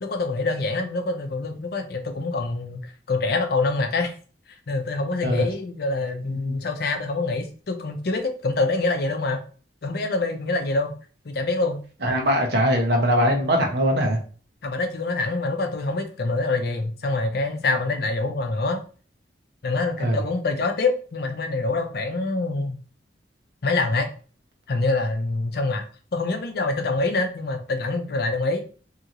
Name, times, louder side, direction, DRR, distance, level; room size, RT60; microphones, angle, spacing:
voice 1, 0.0-4.2 4.5-9.4 9.8-10.9 11.2-11.8 14.6-18.8 19.6-22.8 23.6-24.1 24.7-25.8 26.1-28.6, left 3 dB, 60° left, 0.5 m, -25 dB
voice 2, 12.0-14.2 20.0-20.2, equal, 65° right, 0.7 m, -21 dB
2.8 x 2.5 x 2.8 m
head